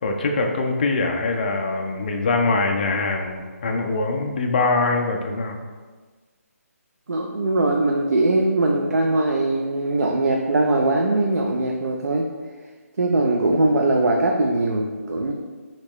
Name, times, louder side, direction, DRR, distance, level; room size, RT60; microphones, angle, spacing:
voice 1, 0.0-5.6, left 3 dB, 35° left, 2 dB, 0.3 m, -23 dB
voice 2, 7.1-12.3 13.0-15.3, right 2 dB, 90° right, 0 dB, 0.4 m, -21 dB
3.2 x 2.8 x 3.0 m, 1.4 s
hypercardioid pair, 160°, 8 cm